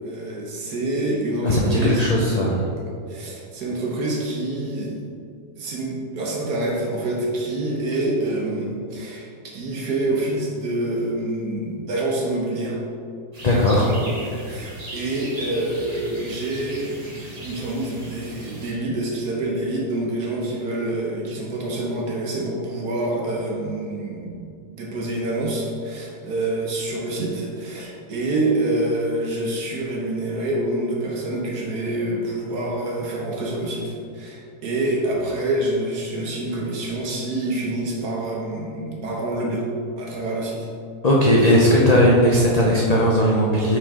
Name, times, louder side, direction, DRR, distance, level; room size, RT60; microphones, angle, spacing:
voice 1, 0.0-2.5 3.1-5.0 5.6-12.8 13.8-14.1 14.5-39.6 40.0-40.7 41.4-41.5, right 1 dB, 75° right, -3 dB, 1.4 m, -27 dB
voice 2, 1.4-2.6 13.4-13.9 41.0-43.8, equal, 75° left, -4 dB, 0.3 m, -17 dB
sound 1, 13.3-18.7, right 1 dB, 25° right, 1.0 m, -38 dB
5.6 x 5.1 x 3.6 m, 2.4 s
omnidirectional pair, 1.7 m